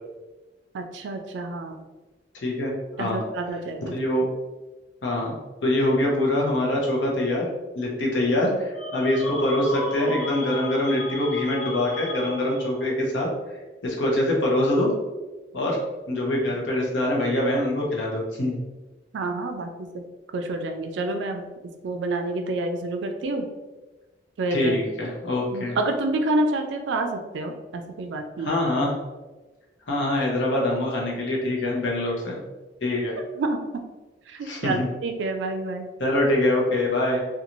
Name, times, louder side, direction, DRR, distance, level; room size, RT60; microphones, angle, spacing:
voice 1, 0.7-1.8 3.0-3.9 19.1-20.0 20.3-21.4 21.8-23.5 24.4-24.7 25.5-28.6 33.4-33.8 34.3-35.9, right 2 dB, 80° right, 5 dB, 0.3 m, -28 dB
voice 2, 2.4-2.7 3.0-3.2 3.9-4.2 5.0-5.3 5.6-7.5 7.8-13.3 13.8-14.9 15.5-15.8 16.1-18.6 24.5-25.8 28.4-28.9 29.9-32.4 32.8-33.2 34.4-34.9 36.0-37.2, left 1 dB, 85° left, -2 dB, 0.7 m, -24 dB
sound 1, 8.7-12.9, left 1 dB, ahead, 1.1 m, -34 dB
2.5 x 2.3 x 2.9 m, 1.2 s
head